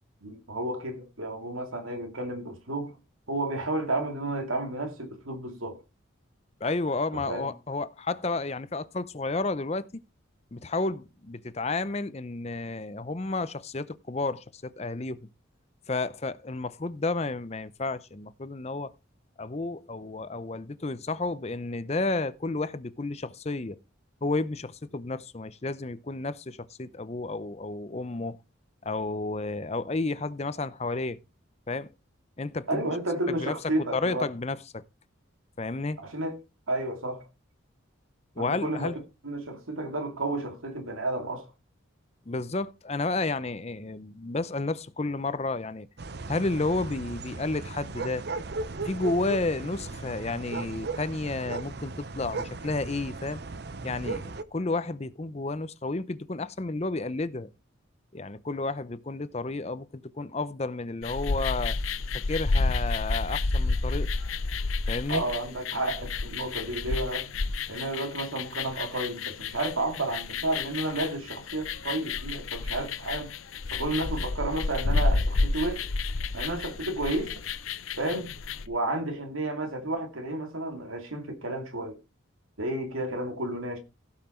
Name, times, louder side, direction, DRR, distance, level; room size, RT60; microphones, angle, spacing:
voice 1, 0.2-3.0 3.3-5.8 7.1-7.5 32.7-34.3 36.0-36.4 36.7-37.2 38.4-41.5 65.1-67.3 67.7-73.3 73.7-75.9 76.3-77.3 78.0-78.3 78.7-82.0 82.6-83.8, right 2 dB, 85° right, 2.6 m, -32 dB
voice 2, 6.6-10.0 10.5-15.3 15.9-18.9 19.4-23.8 24.2-28.4 28.8-31.2 31.7-31.9 32.4-32.8 33.3-33.5 33.9-34.8 35.6-36.0 38.4-39.0 42.3-45.9 46.3-48.2 48.8-53.4 53.8-57.5 58.1-61.8 62.1-64.1 64.9-65.2, left 3 dB, 30° left, 0.6 m, -31 dB
sound 1, 46.0-54.4, right 3 dB, 50° right, 0.7 m, -37 dB
sound 2, 61.0-78.7, left 3 dB, 80° left, 0.8 m, -30 dB
16.0 x 5.8 x 4.4 m
head